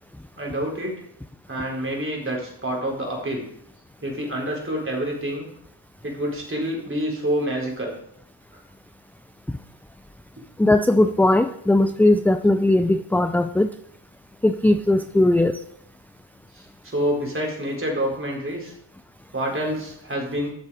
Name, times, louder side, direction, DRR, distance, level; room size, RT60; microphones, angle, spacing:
voice 1, 0.4-1.0 1.5-3.5 4.0-5.5 6.0-7.9 8.5-8.6 16.5-18.7 19.3-20.5, equal, 25° right, -1 dB, 4.2 m, -27 dB
voice 2, 10.6-13.7 14.4-15.6, left 1 dB, 5° left, 10 dB, 0.4 m, -18 dB
11.5 x 7.2 x 4.9 m, 0.72 s
cardioid pair, 65°, 46 cm